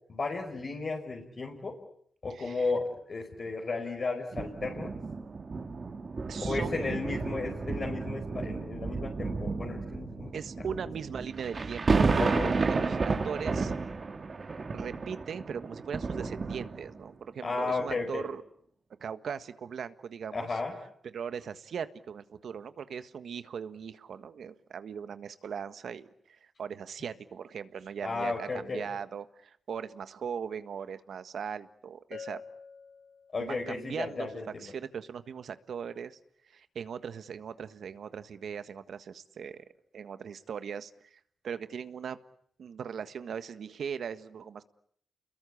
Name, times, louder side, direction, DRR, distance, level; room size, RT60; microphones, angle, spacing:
voice 1, 0.1-1.8 2.2-5.0 6.4-10.8 12.2-12.6 17.4-18.3 20.3-20.8 28.0-28.9 33.3-34.7, left 3 dB, 45° left, 0 dB, 5.2 m, -34 dB
voice 2, 2.3-2.6 6.3-6.8 10.3-13.7 14.7-18.4 19.0-20.5 21.1-32.4 33.4-36.2 36.4-39.6 39.9-42.2 42.6-44.6, right 7 dB, 70° right, 11 dB, 1.5 m, -39 dB
sound 1, 4.3-17.1 17.8-17.9, right 4 dB, 40° right, 2.5 m, -32 dB
Bell, 32.1-33.7, left 6 dB, 70° left, 2.3 m, -47 dB
30.0 x 22.0 x 8.6 m, 0.67 s
cardioid pair, 95°, 0 cm